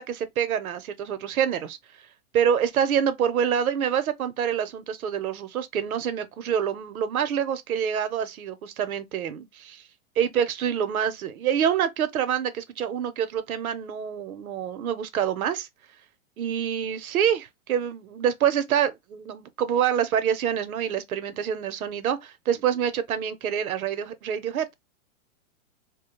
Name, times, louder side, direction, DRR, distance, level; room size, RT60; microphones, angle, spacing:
voice 1, 0.0-1.8 2.3-9.8 10.2-15.7 16.4-24.7, right 8 dB, 90° right, 0.7 m, -26 dB
2.4 x 2.1 x 2.9 m
hypercardioid pair, 130°, 41 cm